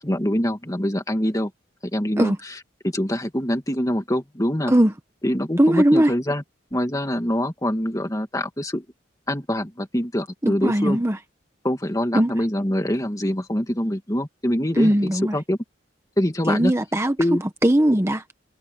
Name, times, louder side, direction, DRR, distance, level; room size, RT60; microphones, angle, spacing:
voice 1, 0.0-1.5 1.9-2.5 2.8-4.7 5.2-6.4 6.7-8.9 9.3-11.0 11.6-15.6 16.2-16.7 17.2-17.4, equal, 20° left, 2.2 m, -24 dB
voice 2, 5.6-6.1 10.4-11.2 12.1-12.3 14.7-15.4 16.5-17.2 17.6-18.2, right 1 dB, 15° right, 1.1 m, -19 dB
head